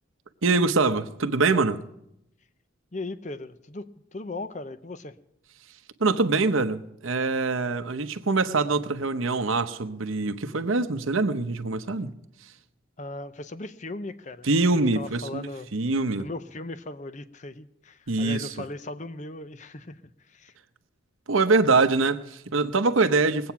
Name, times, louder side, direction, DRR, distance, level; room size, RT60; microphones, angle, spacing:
voice 1, 0.4-1.8 6.0-12.1 14.4-16.3 18.1-18.5 21.3-23.5, right 3 dB, 85° right, 10 dB, 0.9 m, -24 dB
voice 2, 2.9-5.2 13.0-15.7 16.1-20.6, left 2 dB, 35° left, 12 dB, 0.7 m, -38 dB
21.0 x 8.6 x 5.9 m, 0.79 s
head